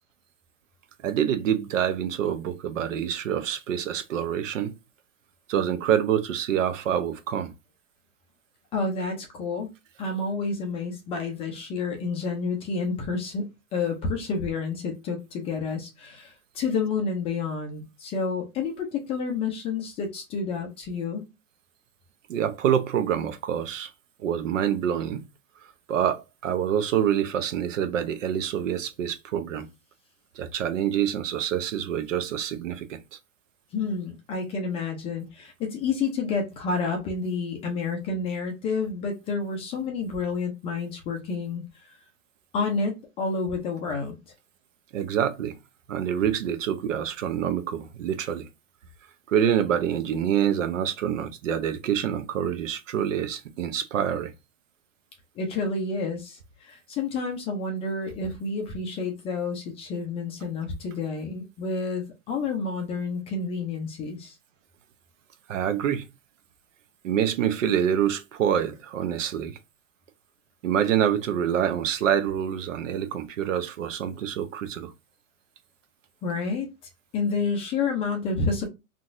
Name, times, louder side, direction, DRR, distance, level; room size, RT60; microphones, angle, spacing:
voice 1, 1.0-4.7 5.5-7.5 22.3-23.9 24.2-25.2 25.9-29.7 30.4-33.2 44.9-45.6 45.9-48.5 49.3-54.3 65.5-66.1 67.0-69.6 70.6-74.9, right 9 dB, 70° right, 0.7 m, -26 dB
voice 2, 8.7-9.7 10.0-21.3 33.7-41.9 42.5-44.2 55.4-64.4 76.2-76.7 77.1-78.7, left 4 dB, 15° left, 0.4 m, -29 dB
3.9 x 2.4 x 2.5 m
hypercardioid pair, 130°, 40 cm